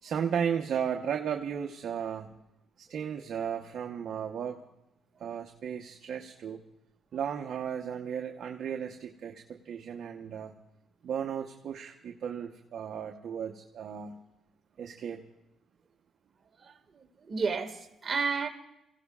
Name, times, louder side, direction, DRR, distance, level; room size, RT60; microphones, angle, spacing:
voice 1, 0.0-2.3 2.8-4.6 5.2-6.6 7.1-10.5 11.0-14.2 14.8-15.2, right 8 dB, 65° right, 1.0 m, -35 dB
voice 2, 16.6-18.5, right 5 dB, 40° right, 1.9 m, -32 dB
30.0 x 16.5 x 2.4 m
cardioid pair, 90°, 0 cm